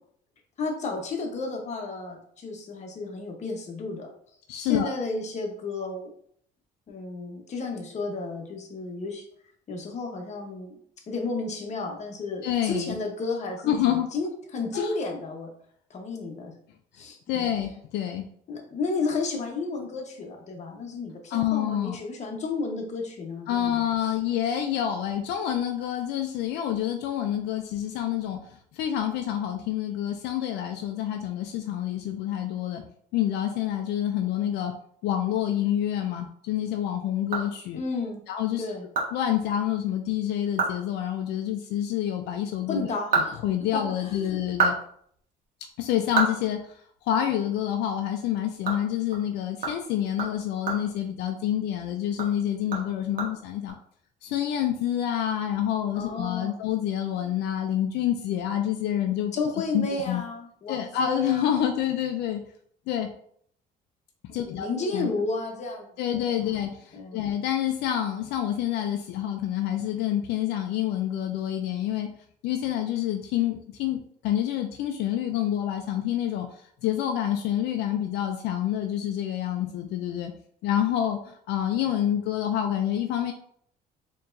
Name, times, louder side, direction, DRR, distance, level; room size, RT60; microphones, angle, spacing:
voice 1, 0.6-4.1 4.6-6.1 6.9-9.3 9.7-10.7 11.1-15.5 15.9-16.6 16.9-17.5 18.5-24.1 37.7-38.2 38.6-38.9 42.7-43.4 43.7-44.4 55.9-56.6 59.3-61.6 64.3-66.2 66.9-67.2, left 3 dB, 45° left, 2 dB, 1.0 m, -32 dB
voice 2, 4.5-4.9 12.4-13.0 13.6-14.1 14.7-14.9 17.3-18.3 21.3-22.0 23.5-32.9 33.1-34.8 35.0-37.8 38.3-38.6 39.1-42.9 43.1-44.7 45.8-53.7 54.2-59.3 59.7-60.2 60.7-62.4 62.9-63.1 64.3-65.1 66.0-72.1 72.4-80.3 80.6-83.3, left 11 dB, 80° left, 5 dB, 0.4 m, -28 dB
sound 1, 36.9-38.1 38.5-38.6 38.9-39.1 39.4-39.5 40.0-40.1 40.4-40.8 41.1-41.2 42.7-44.0 44.4-47.3 47.6-47.8 48.1-51.7 52.1-53.7, right 4 dB, 55° right, 1.3 m, -31 dB
4.4 x 3.0 x 2.6 m, 0.64 s
cardioid pair, 110°, 17 cm